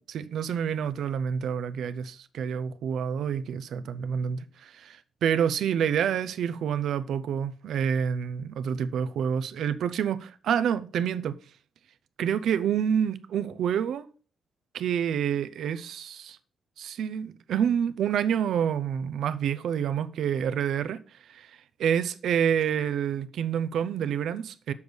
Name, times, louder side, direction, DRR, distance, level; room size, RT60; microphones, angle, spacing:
voice 1, 0.1-11.3 12.2-14.1 14.7-16.4 16.8-24.7, right 8 dB, 70° right, 0.6 m, -28 dB
7.0 x 6.3 x 5.1 m
cardioid pair, 150°, 0 cm